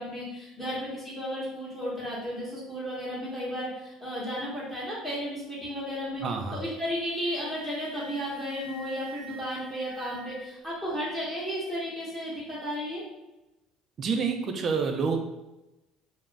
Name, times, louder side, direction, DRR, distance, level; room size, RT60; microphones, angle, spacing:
voice 1, 0.0-6.2 6.5-13.0, equal, 10° left, -9 dB, 0.9 m, -34 dB
voice 2, 6.2-6.6 14.0-15.2, right 5 dB, 35° right, 4 dB, 0.3 m, -28 dB
Wind instrument woodwind instrument, 6.7-10.7, right 1 dB, 80° right, 0.8 m, -47 dB
2.4 x 2.1 x 3.2 m, 0.99 s
cardioid pair, 140°, 0 cm